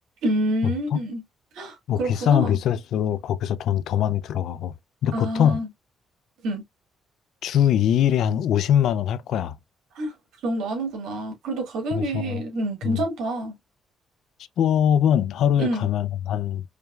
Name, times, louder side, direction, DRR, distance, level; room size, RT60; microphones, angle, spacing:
voice 1, 0.2-1.2 1.6-2.6 5.1-5.7 6.4-6.6 10.0-10.1 10.4-13.5 15.6-15.9, right 1 dB, 85° right, 2.2 m, -27 dB
voice 2, 1.9-4.7 5.0-5.6 7.4-9.6 11.9-12.4 12.8-13.0 14.6-16.6, left 9 dB, 75° left, 0.4 m, -22 dB
5.0 x 3.1 x 2.4 m
cardioid pair, 90°, 0 cm